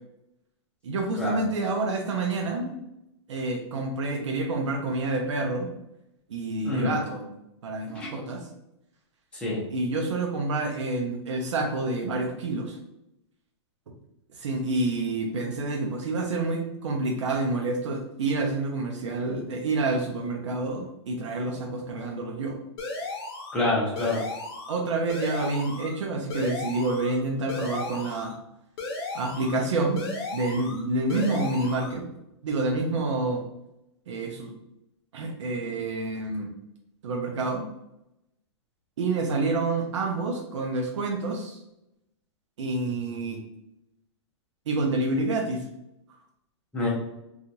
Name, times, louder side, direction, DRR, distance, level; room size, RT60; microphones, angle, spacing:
voice 1, 0.8-2.8 3.3-5.7 6.3-7.2 7.6-8.4 9.7-12.8 14.4-22.5 24.7-28.3 29.1-32.0 32.4-33.4 34.1-34.5 35.1-36.5 37.0-37.6 39.0-41.6 42.6-43.4 44.7-45.6, right 2 dB, 75° right, 1 dB, 0.6 m, -28 dB
sound 1, 22.8-23.6 24.0-24.8 25.1-25.9 26.3-27.2 27.5-28.3 28.8-29.6 30.0-30.8 31.1-31.9, left 2 dB, 55° left, 0.7 m, -35 dB
voice 2, 23.5-24.2 46.7-46.9, left 2 dB, 5° left, -6 dB, 0.7 m, -27 dB
2.8 x 2.4 x 2.7 m, 0.86 s
hypercardioid pair, 165°, 15 cm